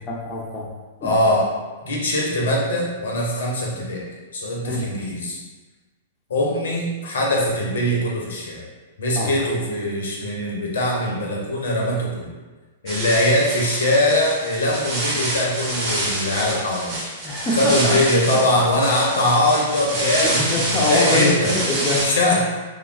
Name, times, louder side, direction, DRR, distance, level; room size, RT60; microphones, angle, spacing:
voice 1, 0.1-0.7 1.0-1.1 4.6-4.9 9.2-9.3 17.2-18.0 20.2-22.1, left 2 dB, 15° left, -4 dB, 0.5 m, -24 dB
voice 2, 1.0-1.5 1.8-4.0 4.3-5.4 6.3-8.6 9.0-12.3 12.8-17.0 17.5-20.4 20.7-21.6 22.0-22.6, left 1 dB, 65° left, -2 dB, 0.6 m, -21 dB
sound 1, 12.9-22.0, right 1 dB, 40° right, 0.9 m, -27 dB
3.2 x 2.2 x 2.3 m, 1.3 s
figure-of-eight pair, 105°, 0 cm